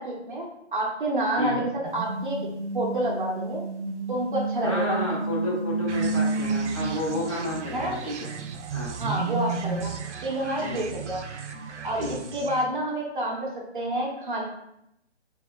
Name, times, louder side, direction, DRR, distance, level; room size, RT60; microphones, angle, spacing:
voice 1, 0.0-2.4 2.7-3.6 4.1-5.0 7.7-8.0 9.0-9.9 10.2-11.2 11.8-14.4, right 1 dB, 45° right, -2 dB, 0.9 m, -28 dB
sound 1, 1.8-7.7 8.8-9.8, right 3 dB, 60° right, 1.3 m, -30 dB
voice 2, 4.6-8.3 8.7-8.9 10.6-10.8 12.0-12.1, left 1 dB, 30° left, -6 dB, 0.9 m, -31 dB
sound 2, 5.9-12.7, right 7 dB, 75° right, 0.6 m, -38 dB
5.3 x 2.4 x 2.4 m, 0.79 s
hypercardioid pair, 175°, 35 cm